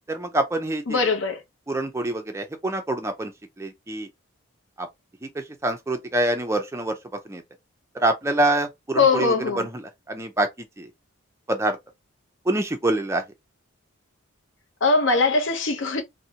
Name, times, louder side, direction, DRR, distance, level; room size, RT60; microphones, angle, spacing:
voice 1, 0.1-1.0 1.7-3.3 3.6-4.1 4.8-4.9 5.2-7.0 7.3-7.4 7.9-10.9 11.5-11.8 12.5-13.2, right 2 dB, 10° right, 0.4 m, -26 dB
voice 2, 0.9-1.4 9.0-9.7 14.8-16.0, left 4 dB, 55° left, 0.6 m, -21 dB
2.6 x 2.1 x 2.7 m
head